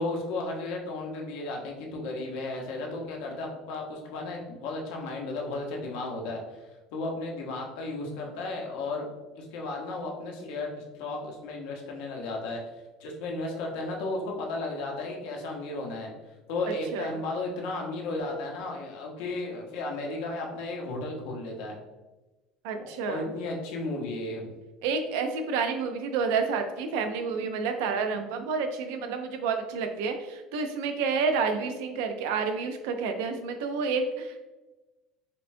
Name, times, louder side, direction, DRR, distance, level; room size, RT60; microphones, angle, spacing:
voice 1, 0.0-6.4 6.9-10.7 11.0-12.6 13.0-16.1 16.5-21.8 22.8-24.5, left 2 dB, 75° left, 0 dB, 0.8 m, -34 dB
voice 2, 22.6-23.3 24.8-34.5, right 5 dB, 90° right, 6 dB, 0.5 m, -29 dB
5.1 x 2.2 x 2.6 m, 1.1 s
cardioid pair, 150°, 0 cm